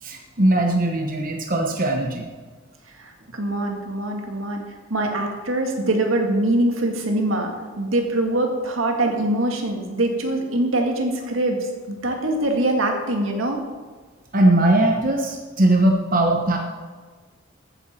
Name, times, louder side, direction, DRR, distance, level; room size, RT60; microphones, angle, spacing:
voice 1, 0.0-2.3 14.3-16.6, right 1 dB, 40° right, 1 dB, 1.1 m, -20 dB
voice 2, 3.0-4.6 4.9-13.6, right 1 dB, 80° right, 2 dB, 1.9 m, -23 dB
14.0 x 9.2 x 4.4 m, 1.4 s
head